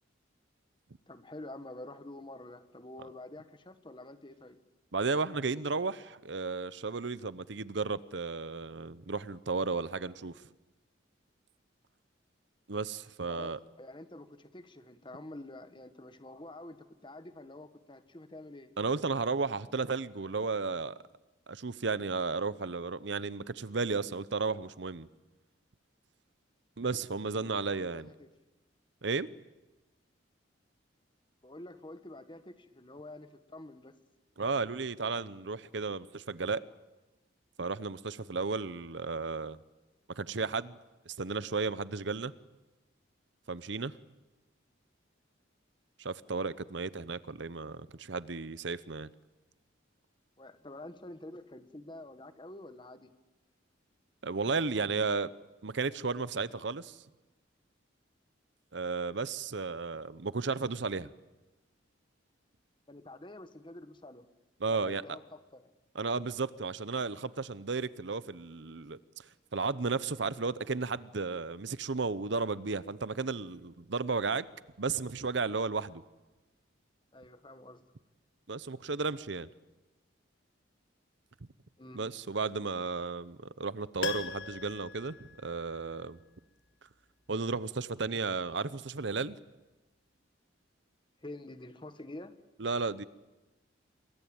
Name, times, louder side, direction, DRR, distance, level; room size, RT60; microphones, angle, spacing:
voice 1, 1.1-4.6 13.3-18.8 27.4-28.3 31.4-33.9 50.4-53.1 62.9-64.3 64.7-65.7 77.1-77.8 81.8-82.0 91.2-92.3, left 1 dB, 25° left, 10 dB, 1.4 m, -48 dB
voice 2, 4.9-10.4 12.7-13.6 18.8-21.0 21.5-25.1 26.8-28.1 29.0-29.3 34.4-36.6 37.6-39.6 40.1-40.8 41.1-42.3 43.5-43.9 46.0-49.1 54.2-55.3 55.6-57.0 58.7-61.1 64.6-65.2 65.9-69.0 69.5-74.5 74.8-76.0 78.5-79.5 81.9-86.2 87.3-89.4 92.6-93.0, right 4 dB, 65° right, 17 dB, 0.8 m, -34 dB
Piano, 84.0-86.1 86.4-86.5, left 5 dB, 70° left, 1.6 m, -40 dB
28.0 x 22.5 x 8.8 m, 1.1 s
head